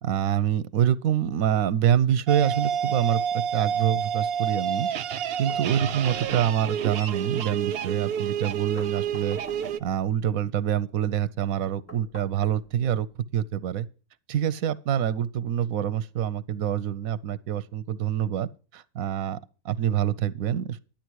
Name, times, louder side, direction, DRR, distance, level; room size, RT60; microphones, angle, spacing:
voice 1, 0.0-4.9 5.4-9.4 9.8-13.1 13.3-13.9 14.3-19.4 19.6-20.8, right 10 dB, 85° right, 1.1 m, -26 dB
sound 1, 2.3-9.8, right 8 dB, 55° right, 0.8 m, -29 dB
sound 2, 5.5-6.8 8.8-10.1 11.9-13.1, equal, 10° left, 2.4 m, -47 dB
12.0 x 8.9 x 4.6 m
omnidirectional pair, 1.4 m